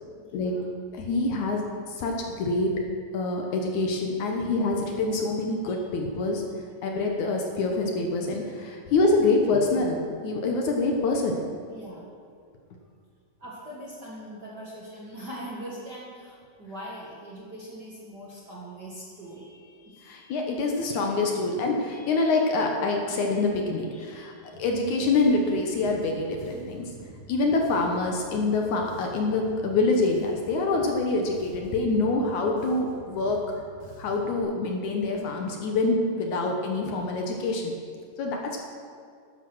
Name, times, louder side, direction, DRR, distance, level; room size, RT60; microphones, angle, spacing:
voice 1, 0.0-0.7 11.7-12.1 13.4-20.2 33.5-33.6, right 1 dB, 40° right, -5 dB, 1.7 m, -42 dB
voice 2, 0.9-1.6 1.9-2.8 3.1-6.4 6.8-11.4 20.0-26.9 27.3-33.4 34.0-37.7 38.2-38.6, left 3 dB, 65° left, 2 dB, 2.3 m, -26 dB
Bass guitar, 24.5-34.4, right 2 dB, 90° right, 5.5 m, -48 dB
12.5 x 9.7 x 6.2 m, 2.2 s
omnidirectional pair, 4.1 m